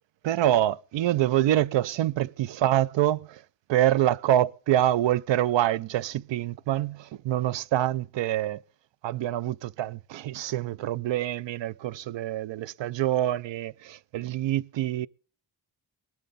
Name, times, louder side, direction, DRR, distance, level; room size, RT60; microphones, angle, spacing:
voice 1, 0.2-3.4 3.7-8.6 9.0-15.1, right 13 dB, 90° right, 0.6 m, -26 dB
20.0 x 11.5 x 4.1 m
cardioid pair, 85°, 43 cm